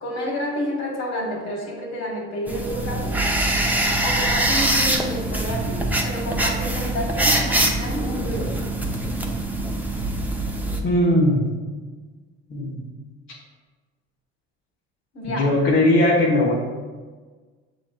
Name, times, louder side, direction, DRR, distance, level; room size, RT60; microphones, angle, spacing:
voice 1, 0.0-3.2 4.0-8.7 15.1-15.7, equal, 55° left, 0 dB, 1.5 m, -30 dB
sound 1, 2.5-10.8, right 1 dB, 5° right, 0.6 m, -23 dB
voice 2, 10.8-11.5 12.5-12.8 15.2-16.5, left 1 dB, 35° left, -4 dB, 0.9 m, -19 dB
7.2 x 3.3 x 2.2 m, 1.4 s
hypercardioid pair, 65°, 32 cm